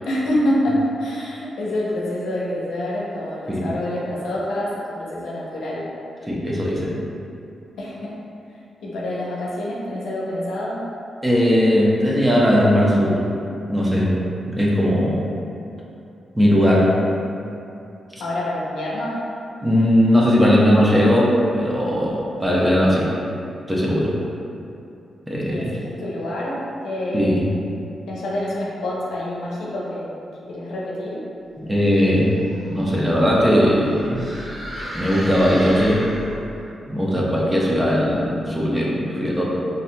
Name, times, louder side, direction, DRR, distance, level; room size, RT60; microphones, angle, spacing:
voice 1, 0.1-5.9 7.8-8.1 8.8-10.8 18.2-19.2 25.5-26.6 26.8-27.2 28.1-30.1 30.5-31.2, left 1 dB, 90° left, -5 dB, 0.6 m, -26 dB
voice 2, 6.3-7.0 11.2-13.3 13.7-14.1 14.5-15.2 16.4-16.9 19.6-23.1 23.7-24.1 25.3-25.8 27.1-27.5 31.6-32.4 32.7-34.2 34.9-36.0 36.9-39.4, equal, 15° right, -5 dB, 0.7 m, -18 dB
sound 1, 32.2-36.6, equal, 40° right, 1.2 m, -34 dB
4.1 x 2.7 x 2.2 m, 2.7 s
cardioid pair, 70°, 0 cm